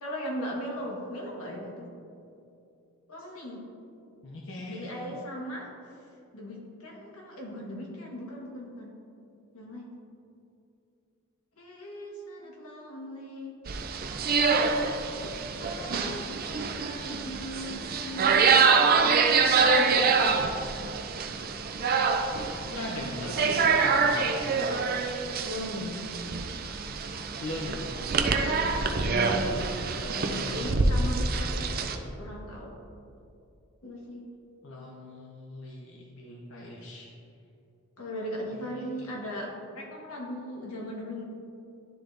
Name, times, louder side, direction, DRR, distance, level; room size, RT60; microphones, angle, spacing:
voice 1, 0.0-1.9 3.1-3.6 4.6-5.7 6.3-8.9 9.5-9.9 11.6-13.5 14.0-14.9 15.5-19.2 19.5-20.4 25.4-26.0 28.4-32.7 33.8-34.3 38.0-41.2, equal, 85° left, -2 dB, 1.6 m, -38 dB
voice 2, 4.2-5.0 22.7-24.8 27.4-28.4 28.8-29.3 29.9-30.7 34.6-37.1 38.7-38.8, left 1 dB, 60° left, -2 dB, 0.7 m, -40 dB
sound 1, 13.7-32.0, right 5 dB, 45° right, 0.4 m, -26 dB
11.5 x 3.9 x 3.3 m, 2.6 s
head